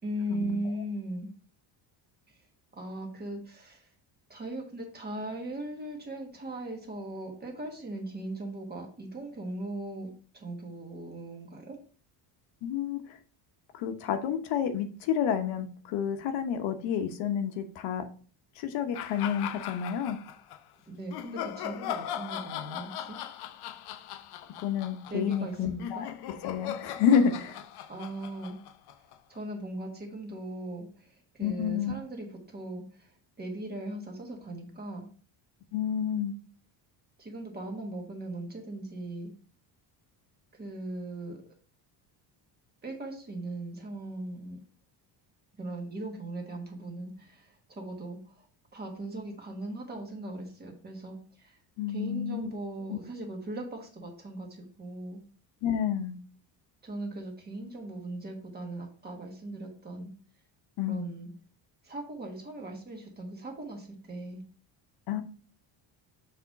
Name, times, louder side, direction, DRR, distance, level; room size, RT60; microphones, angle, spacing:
voice 1, 0.0-1.3 2.3-2.4 2.8-3.9 4.3-11.8 20.9-23.2 25.1-26.1 27.9-28.6 29.3-35.1 37.2-39.3 40.5-41.4 42.8-44.6 45.6-48.5 48.7-51.6 51.9-55.2 56.8-60.1 60.9-61.3 61.8-64.4, right 1 dB, 20° right, 2 dB, 1.3 m, -39 dB
voice 2, 12.6-13.2 13.7-18.1 18.6-20.2 24.6-26.1 26.4-27.6 31.4-31.9 35.7-36.3 51.8-52.5 52.9-53.0 55.6-56.1 60.8-61.0 65.1-65.2, left 8 dB, 90° left, 7 dB, 1.0 m, -29 dB
sound 1, 18.9-20.6 21.1-29.4, left 10 dB, 60° left, 0.6 m, -39 dB
6.8 x 3.7 x 4.0 m, 0.41 s
cardioid pair, 165°, 44 cm